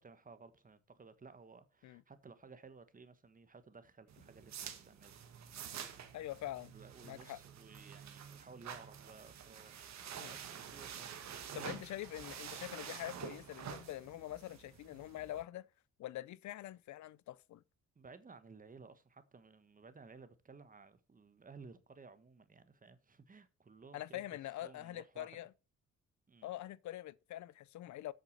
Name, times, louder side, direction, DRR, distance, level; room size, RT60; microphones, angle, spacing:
voice 1, 0.0-4.6 4.8-5.2 6.7-10.4 10.7-11.9 17.9-24.2 24.6-25.4 26.3-26.5, right 4 dB, 25° right, 1.3 m, -57 dB
sound 1, 4.1-15.4, right 8 dB, 65° right, 1.7 m, -49 dB
voice 2, 6.1-6.7 7.0-7.4 10.2-10.3 11.5-15.7 16.0-17.6 23.9-25.5 26.4-28.1, left 14 dB, 70° left, 0.5 m, -45 dB
8.0 x 6.6 x 6.6 m
cardioid pair, 90°, 30 cm